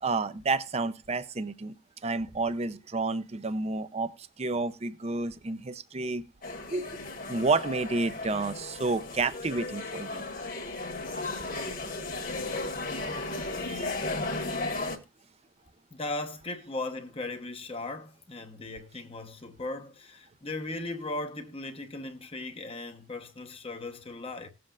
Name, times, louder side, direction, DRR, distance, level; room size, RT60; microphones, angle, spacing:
voice 1, 0.0-1.7 2.0-6.2 6.7-6.9 7.3-10.2 13.6-13.9, right 3 dB, 30° right, 0.6 m, -30 dB
sound 1, 6.4-15.0, left 2 dB, 45° left, 1.7 m, -35 dB
voice 2, 13.1-14.7 15.9-24.5, left 2 dB, 30° left, 0.9 m, -38 dB
18.0 x 7.7 x 2.4 m
head